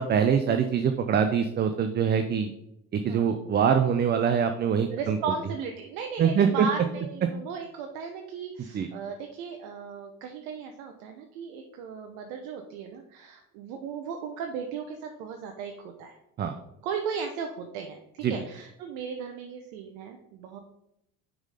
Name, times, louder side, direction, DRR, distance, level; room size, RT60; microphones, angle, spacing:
voice 1, 0.0-2.5 2.9-5.2 6.2-6.7 8.7-8.9 16.4-16.5 18.2-18.3, right 7 dB, 25° right, 7 dB, 0.5 m, -24 dB
voice 2, 4.9-16.2 16.8-20.6, right 6 dB, 65° right, 4 dB, 0.8 m, -36 dB
6.2 x 3.9 x 4.9 m, 0.81 s
hypercardioid pair, 65°, 41 cm